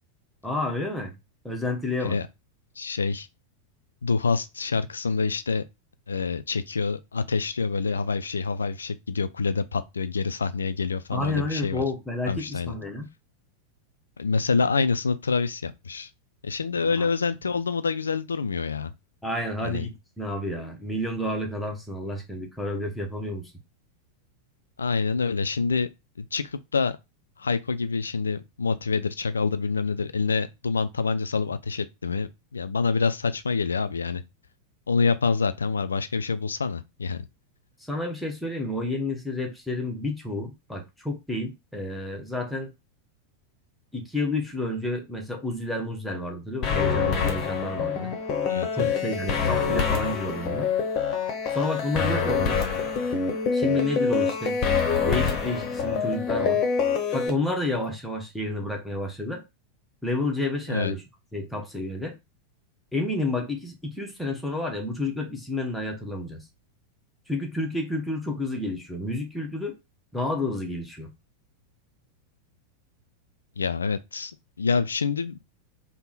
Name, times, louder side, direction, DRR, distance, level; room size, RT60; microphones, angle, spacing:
voice 1, 0.4-1.1 1.4-2.2 11.1-13.1 16.8-17.1 19.2-23.5 37.9-42.7 43.9-48.1 48.7-50.7 51.5-52.6 53.5-54.6 55.0-56.6 57.1-59.4 60.0-61.0 61.3-62.2 62.9-66.4 67.3-69.8 70.1-71.1, left 2 dB, 5° left, 0.9 m, -30 dB
voice 2, 2.8-3.3 4.0-5.6 6.1-11.8 12.3-12.8 14.2-16.1 16.4-18.9 19.6-19.9 24.8-25.9 26.2-27.0 27.4-34.2 34.9-37.3 48.5-48.9 60.7-60.9 73.6-74.3 74.6-75.4, left 4 dB, 75° left, 0.3 m, -26 dB
sound 1, 46.6-57.3, left 6 dB, 35° left, 0.8 m, -25 dB
3.5 x 2.1 x 3.9 m
figure-of-eight pair, 90°, 0 cm